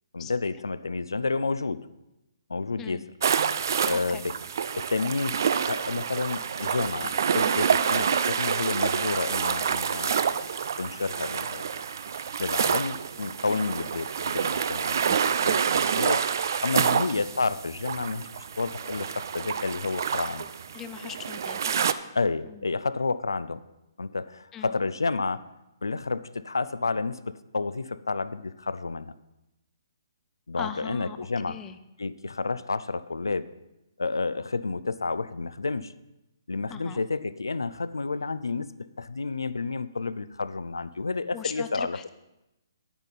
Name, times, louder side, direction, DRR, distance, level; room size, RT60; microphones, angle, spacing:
voice 1, 0.1-1.9 2.5-3.0 3.9-4.4 4.8-10.4 10.8-11.7 12.4-16.3 16.6-18.3 18.6-20.4 22.1-23.6 24.0-25.4 25.8-29.1 30.5-31.6 32.0-33.5 34.0-35.9 36.5-42.0, left 3 dB, 75° left, 16 dB, 0.5 m, -30 dB
sound 1, 3.2-21.9, right 7 dB, 55° right, 0.4 m, -28 dB
voice 2, 20.7-21.7 22.4-22.6 24.5-24.7 30.6-31.2 31.5-31.8 36.7-37.0 41.3-42.1, left 8 dB, 15° left, 10 dB, 0.4 m, -39 dB
10.5 x 9.2 x 4.1 m, 0.94 s
figure-of-eight pair, 130°, 2 cm